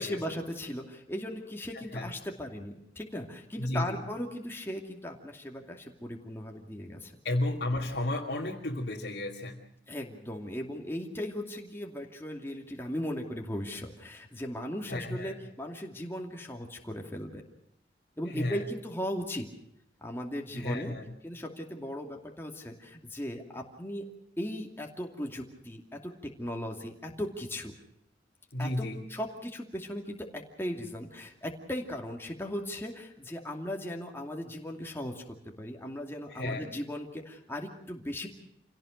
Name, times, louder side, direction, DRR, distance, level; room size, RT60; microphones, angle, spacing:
voice 1, 0.0-7.1 9.9-17.4 18.2-19.5 20.0-20.9 21.2-24.1 24.4-27.7 28.6-38.3, left 1 dB, 15° left, 1 dB, 2.6 m, -37 dB
voice 2, 3.6-4.0 7.2-9.6 14.9-15.3 18.3-18.6 20.5-21.1 28.5-29.0 36.3-36.6, left 1 dB, 65° left, -4 dB, 2.7 m, -32 dB
28.0 x 17.5 x 6.4 m, 0.78 s
head